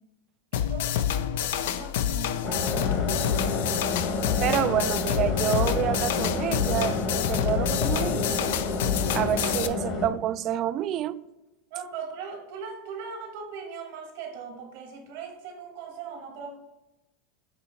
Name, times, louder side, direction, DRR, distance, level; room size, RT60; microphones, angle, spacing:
sound 1, 0.5-9.7, left 10 dB, 75° left, 0.3 m, -28 dB
voice 1, 0.5-1.0 1.4-3.3 11.7-16.6, right 5 dB, 70° right, 1.3 m, -39 dB
sound 2, 2.4-10.1, left 3 dB, 50° left, 1.3 m, -29 dB
voice 2, 4.4-8.5 9.1-11.3, right 11 dB, 45° right, 0.3 m, -28 dB
8.0 x 2.9 x 4.4 m
supercardioid pair, 110°, 0 cm